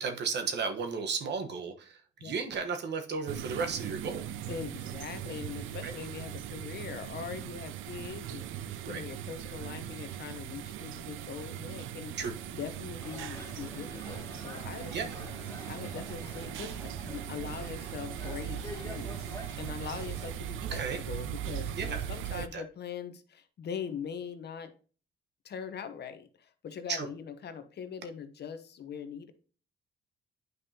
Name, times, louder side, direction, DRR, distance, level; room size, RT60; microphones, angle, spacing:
voice 1, 0.0-4.3 5.8-5.9 8.8-9.0 12.2-12.3 14.9-15.2 20.7-21.0 21.8-22.6 26.9-27.1, right 5 dB, 60° right, 6 dB, 1.2 m, -34 dB
sound 1, 3.3-22.5, right 11 dB, 85° right, 0.5 m, -39 dB
voice 2, 4.5-12.1 12.5-15.1 15.7-19.1 19.6-24.7 25.4-29.3, left 7 dB, 55° left, 9 dB, 1.0 m, -42 dB
sound 2, 13.0-20.4, left 1 dB, 15° left, 2.3 m, -47 dB
9.4 x 5.3 x 2.9 m, 0.38 s
cardioid pair, 90°, 20 cm